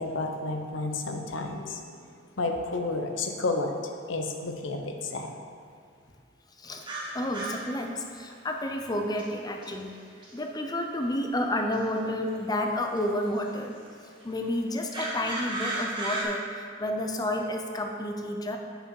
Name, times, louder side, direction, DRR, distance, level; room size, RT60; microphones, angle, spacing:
voice 1, 0.0-2.0 2.4-3.8 4.1-5.3, left 3 dB, 80° left, 4 dB, 0.8 m, -31 dB
sound 1, 6.8-7.7 9.2-9.3 9.6-9.7 10.2-10.3 11.7-11.8 13.0-13.1 14.9-16.2, right 2 dB, 25° right, 1.5 m, -33 dB
voice 2, 7.1-9.9 10.3-13.7 14.2-18.6, left 1 dB, 20° left, 4 dB, 0.6 m, -30 dB
8.0 x 6.1 x 4.7 m, 2.3 s
head